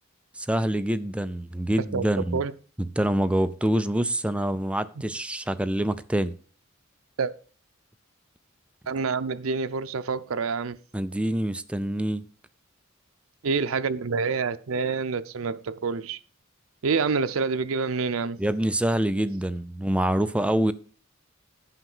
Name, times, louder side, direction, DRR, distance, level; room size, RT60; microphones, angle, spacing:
voice 1, 0.4-2.4 3.0-6.3 10.9-12.2 18.4-20.7, right 1 dB, 5° right, 0.4 m, -26 dB
voice 2, 8.9-10.8 13.4-16.2 16.8-18.4, right 5 dB, 85° right, 0.6 m, -27 dB
10.5 x 5.8 x 5.4 m
head